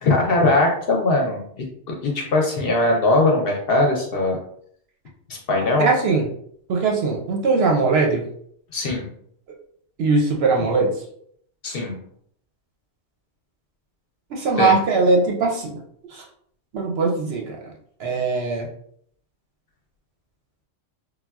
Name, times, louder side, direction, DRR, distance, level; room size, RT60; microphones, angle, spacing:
voice 1, 0.0-4.4 5.3-5.9 8.7-9.1 11.6-12.0 14.6-14.7, left 2 dB, 60° left, 0 dB, 0.7 m, -20 dB
voice 2, 5.8-6.2 6.7-8.3 10.0-11.0 14.3-15.8 16.1-16.2 16.7-17.6 18.0-18.7, right 3 dB, 65° right, 0 dB, 0.7 m, -20 dB
3.5 x 2.2 x 2.2 m, 0.65 s
omnidirectional pair, 1.3 m